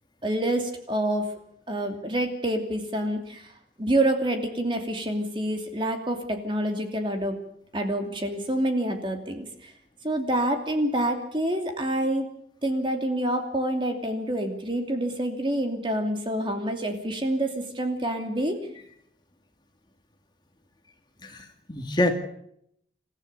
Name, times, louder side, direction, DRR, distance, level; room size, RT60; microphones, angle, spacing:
voice 1, 0.2-1.3 1.7-3.5 3.8-7.4 7.7-9.7 10.0-12.3 12.6-18.6, right 1 dB, 30° right, 5 dB, 2.8 m, -27 dB
voice 2, 21.2-22.1, left 1 dB, 25° left, 5 dB, 2.4 m, -26 dB
28.0 x 15.0 x 6.9 m, 0.71 s
head